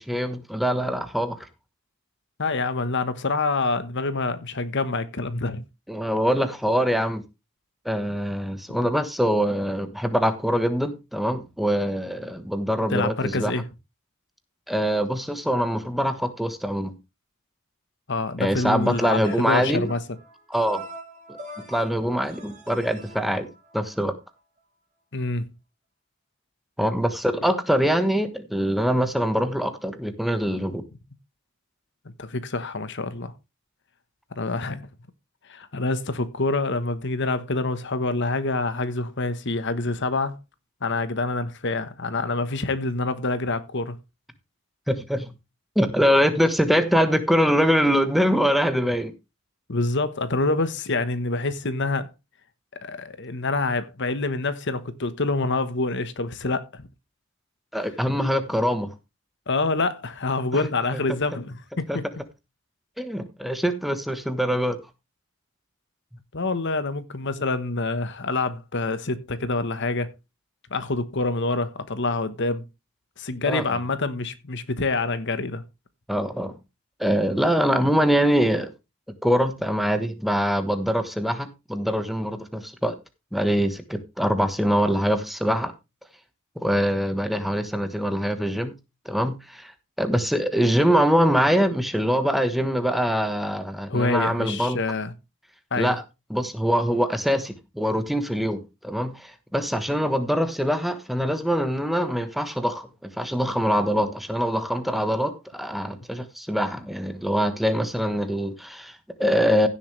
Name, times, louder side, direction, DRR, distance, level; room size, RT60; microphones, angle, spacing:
voice 1, 0.0-1.4 5.9-7.2 7.8-13.5 14.7-16.9 18.4-19.9 20.5-20.8 21.7-23.5 23.7-24.1 26.8-30.8 44.9-45.3 45.7-49.1 57.7-58.9 60.5-60.6 61.9-62.0 63.0-64.8 73.4-73.6 76.1-76.5 77.0-78.7 79.2-83.0 83.3-85.7 86.6-88.7 89.0-89.7 90.0-94.8 95.8-96.0 96.3-109.7, equal, ahead, 1.3 m, -23 dB
voice 2, 2.4-5.6 12.9-13.6 18.1-20.0 25.1-25.5 32.0-33.3 34.3-34.9 35.4-40.4 40.8-44.0 49.7-52.1 52.8-56.9 59.5-62.0 66.3-70.1 70.7-72.6 73.2-75.6 93.9-95.1 95.7-95.9, left 3 dB, 55° left, 1.2 m, -26 dB
sound 1, 18.6-24.0, right 1 dB, 35° right, 4.6 m, -43 dB
16.0 x 7.2 x 3.3 m
head